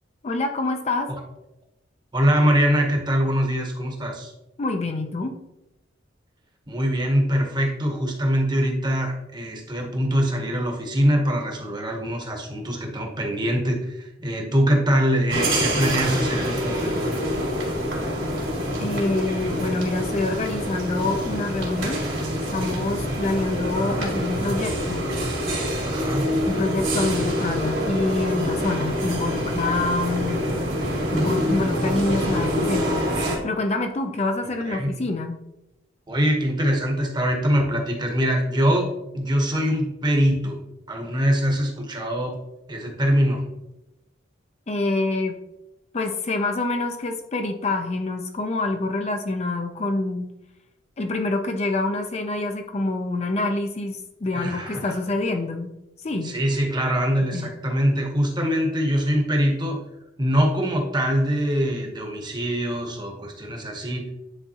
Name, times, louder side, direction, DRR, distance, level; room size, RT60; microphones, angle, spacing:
voice 1, 0.2-1.1 4.6-5.4 18.8-22.0 22.5-25.1 26.5-30.5 31.1-35.4 44.7-45.4 45.9-50.3 51.0-55.7 56.0-56.4 57.3-57.5, left 2 dB, 35° left, 5 dB, 0.5 m, -26 dB
voice 2, 2.1-4.3 6.7-17.1 25.8-26.3 34.7-34.9 36.1-38.9 39.1-40.6 40.9-42.4 42.7-43.5 54.3-54.9 56.2-59.8 60.2-64.0, equal, 20° right, 2 dB, 1.0 m, -23 dB
sound 1, 15.3-33.4, equal, 70° right, 2.3 m, -26 dB
9.8 x 3.6 x 2.8 m, 0.90 s
head